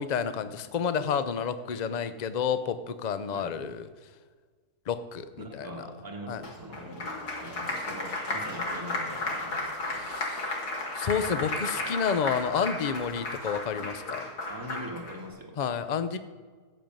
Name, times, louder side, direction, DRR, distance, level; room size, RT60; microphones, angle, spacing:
voice 1, 0.0-3.9 4.9-5.7 6.3-6.4 10.0-10.6 10.9-14.3 15.6-16.2, left 7 dB, 50° left, 12 dB, 0.5 m, -30 dB
voice 2, 5.4-10.1 14.5-15.6, right 1 dB, 15° right, 1 dB, 1.6 m, -42 dB
Applause, 6.4-15.2, left 2 dB, 85° left, 2.8 m, -34 dB
15.0 x 5.5 x 9.0 m, 1.5 s
omnidirectional pair, 1.6 m